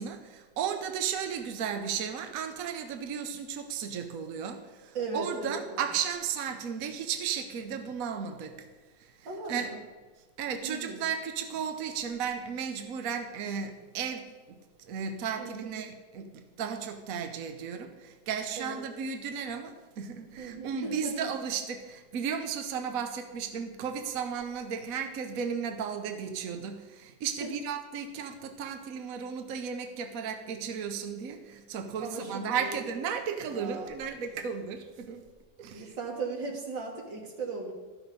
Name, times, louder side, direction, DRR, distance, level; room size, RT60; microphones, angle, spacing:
voice 1, 0.0-8.7 9.5-9.7 10.4-14.6 14.9-35.3 35.6-35.9, right 7 dB, 60° right, 1.1 m, -34 dB
voice 2, 4.9-5.8 9.2-9.8 10.6-11.0 15.4-15.8 18.6-18.8 20.4-21.3 27.4-27.5 32.0-32.8 33.5-33.9 35.7-37.7, right 3 dB, 85° right, 2.5 m, -37 dB
13.5 x 6.1 x 5.3 m
omnidirectional pair, 2.0 m